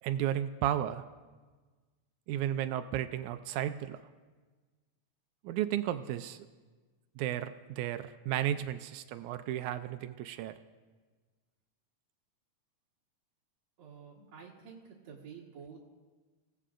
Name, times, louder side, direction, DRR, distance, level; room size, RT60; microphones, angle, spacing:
voice 1, 0.0-1.1 2.3-4.0 5.4-6.5 7.2-10.6, right 11 dB, 85° right, 10 dB, 2.0 m, -33 dB
voice 2, 13.8-15.9, right 6 dB, 65° right, -5 dB, 2.7 m, -50 dB
27.5 x 16.5 x 2.5 m, 1.4 s
omnidirectional pair, 3.4 m